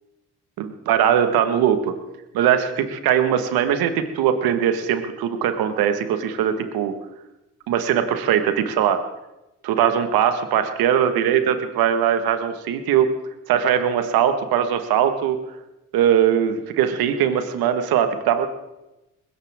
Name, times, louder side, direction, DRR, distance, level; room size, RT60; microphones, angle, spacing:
voice 1, 0.6-1.9 2.3-6.9 7.7-9.0 9.6-13.1 13.5-15.4 15.9-18.5, right 9 dB, 75° right, 8 dB, 1.7 m, -20 dB
20.5 x 17.0 x 3.7 m, 0.97 s
hypercardioid pair, 50°, 36 cm